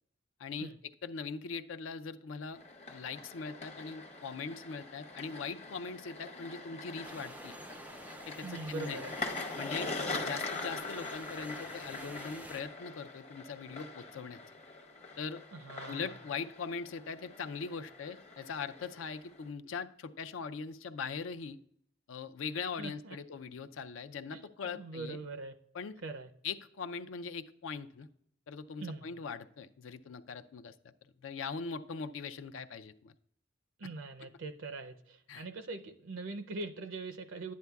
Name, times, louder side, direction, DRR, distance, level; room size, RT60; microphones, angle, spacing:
voice 1, 0.4-2.6 2.9-7.5 8.3-9.0 9.6-9.9 10.2-14.4 15.2-15.4 15.9-21.6 22.1-25.2 25.7-26.0 26.4-28.1 28.5-30.7 31.2-33.1 35.3-35.5, left 5 dB, 75° left, 10 dB, 0.4 m, -41 dB
sound 1, 2.5-19.5, left 3 dB, 35° left, 0.8 m, -43 dB
sound 2, 7.0-12.6, right 1 dB, 10° right, 0.3 m, -49 dB
voice 2, 8.4-9.1 15.5-16.2 22.8-23.2 24.3-25.5 26.0-26.3 28.8-29.1 33.8-37.5, right 3 dB, 75° right, 7 dB, 0.5 m, -42 dB
11.0 x 9.4 x 2.3 m, 0.68 s
head